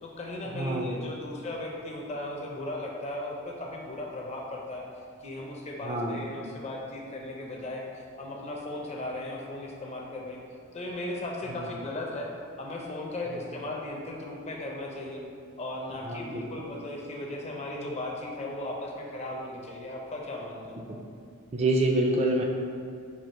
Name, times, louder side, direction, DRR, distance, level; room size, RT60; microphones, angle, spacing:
voice 1, 0.0-4.8 5.2-10.4 10.7-12.3 12.6-15.2 15.6-20.8, left 1 dB, 30° left, -1 dB, 0.5 m, -36 dB
voice 2, 0.5-1.0 5.8-6.2 11.5-11.7 13.3-13.4 16.0-16.4 20.9-21.0 21.5-22.4, right 1 dB, 30° right, 0 dB, 0.3 m, -27 dB
4.6 x 2.4 x 4.3 m, 2.3 s
head